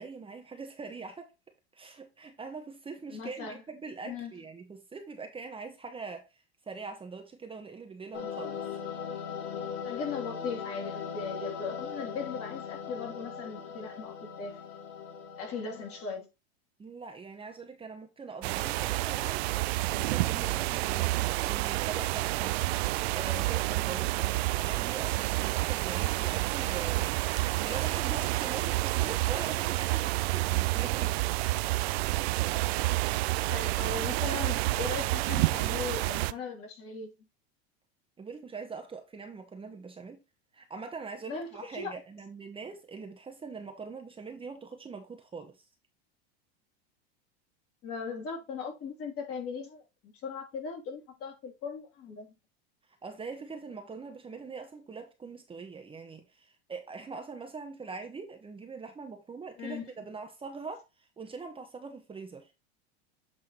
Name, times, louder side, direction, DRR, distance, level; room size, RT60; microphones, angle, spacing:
voice 1, 0.0-1.3 1.7-8.6 16.8-22.6 23.1-31.2 38.2-40.2 40.5-45.7 52.8-62.5, right 4 dB, 15° right, 1.1 m, -43 dB
voice 2, 3.1-3.6 4.0-4.3 9.8-14.6 15.4-16.3 33.5-37.1 41.3-41.5 41.7-41.9 47.8-52.3 59.6-59.8, left 5 dB, 45° left, 2.9 m, -38 dB
sound 1, 8.1-16.1, left 7 dB, 65° left, 2.1 m, -39 dB
sound 2, 18.4-36.3, right 19 dB, 75° right, 0.5 m, -29 dB
8.0 x 3.5 x 4.3 m
supercardioid pair, 110°, 32 cm